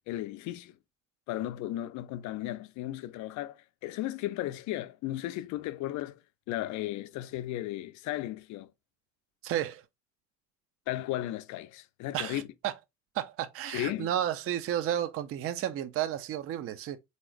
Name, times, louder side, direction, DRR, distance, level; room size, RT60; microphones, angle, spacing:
voice 1, 0.1-0.8 1.3-6.2 6.5-8.7 10.9-12.5 13.7-14.1, left 14 dB, 45° left, 0.5 m, -35 dB
voice 2, 9.4-9.8 12.1-12.7 13.1-17.0, right 11 dB, 35° right, 0.5 m, -32 dB
3.8 x 2.9 x 4.4 m
figure-of-eight pair, 60°, 41 cm